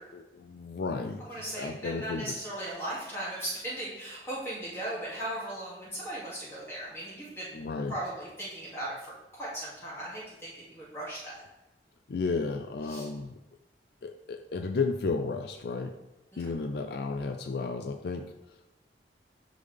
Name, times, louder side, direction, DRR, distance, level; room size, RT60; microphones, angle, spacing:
voice 1, 0.1-2.4 7.5-8.0 12.1-13.4 14.0-15.9 16.4-18.7, left 4 dB, 65° left, 7 dB, 0.4 m, -33 dB
voice 2, 1.2-7.6 7.9-11.4 12.9-13.1 16.3-16.4, right 1 dB, 15° left, -8 dB, 2.3 m, -37 dB
9.7 x 3.8 x 3.4 m, 0.99 s
head